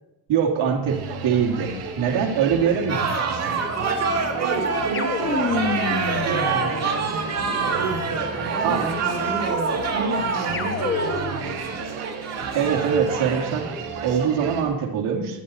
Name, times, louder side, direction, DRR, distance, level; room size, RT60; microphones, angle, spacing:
voice 1, 0.3-3.6 8.6-8.8 12.5-15.4, right 7 dB, 75° right, 0 dB, 2.7 m, -23 dB
sound 1, 0.9-14.6, right 4 dB, 90° right, 3.4 m, -33 dB
sound 2, 2.9-13.5, right 4 dB, 30° right, 2.1 m, -27 dB
voice 2, 4.3-11.8, right 4 dB, 60° right, -5 dB, 3.0 m, -31 dB
sound 3, 4.9-7.4 10.5-11.6, left 5 dB, 25° left, 1.2 m, -29 dB
20.5 x 9.3 x 4.3 m, 0.97 s
cardioid pair, 140°, 49 cm